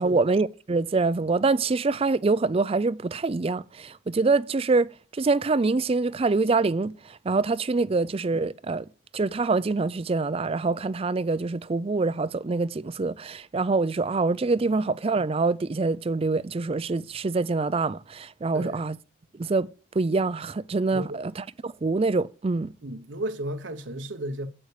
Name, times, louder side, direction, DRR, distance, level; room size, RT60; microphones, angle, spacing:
voice 1, 0.0-8.8 9.1-18.9 19.4-19.7 19.9-22.7, right 3 dB, 30° right, 0.4 m, -25 dB
voice 2, 18.5-18.8 20.9-21.2 22.8-24.5, right 1 dB, 65° right, 0.9 m, -34 dB
8.7 x 8.1 x 4.9 m
head